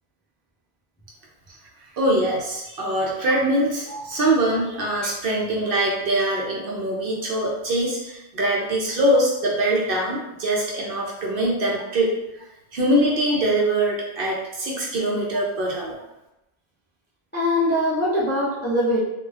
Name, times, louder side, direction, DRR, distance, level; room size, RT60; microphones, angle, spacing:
voice 1, 2.0-12.1 12.7-16.0, right 1 dB, 60° right, -3 dB, 0.7 m, -23 dB
voice 2, 17.3-19.0, left 1 dB, 15° left, -9 dB, 0.4 m, -22 dB
2.3 x 2.2 x 3.2 m, 0.94 s
omnidirectional pair, 1.1 m